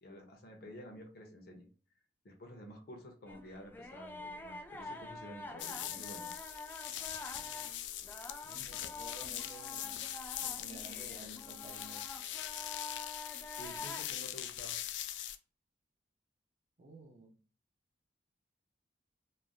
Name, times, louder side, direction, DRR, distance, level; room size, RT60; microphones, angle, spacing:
voice 1, 0.0-1.7 2.2-6.3 8.5-8.7 13.6-14.8, left 1 dB, 60° left, 0.7 m, -51 dB
sound 1, 3.3-14.0, left 2 dB, 10° left, 0.3 m, -47 dB
sound 2, 5.6-15.4, left 11 dB, 90° left, 0.3 m, -42 dB
voice 2, 7.3-7.8 8.4-10.0 10.4-12.1 16.8-17.3, right 1 dB, 40° right, 0.6 m, -53 dB
3.2 x 2.5 x 2.3 m
head